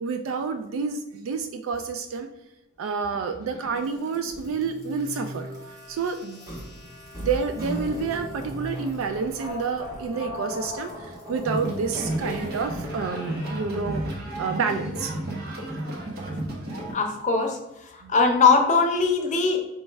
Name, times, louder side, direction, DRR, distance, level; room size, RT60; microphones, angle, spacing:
voice 1, 0.0-2.3 2.8-5.5 5.9-6.4 7.2-14.0 14.4-15.1 18.0-18.1, right 5 dB, 80° right, 8 dB, 0.3 m, -29 dB
sound 1, 3.1-14.4, equal, 20° right, 1.3 m, -38 dB
sound 2, 11.4-16.9, right 1 dB, 55° right, 0.9 m, -32 dB
voice 2, 16.9-17.6 17.9-19.7, left 4 dB, 35° left, 3 dB, 0.7 m, -20 dB
4.5 x 3.1 x 3.3 m, 0.93 s
head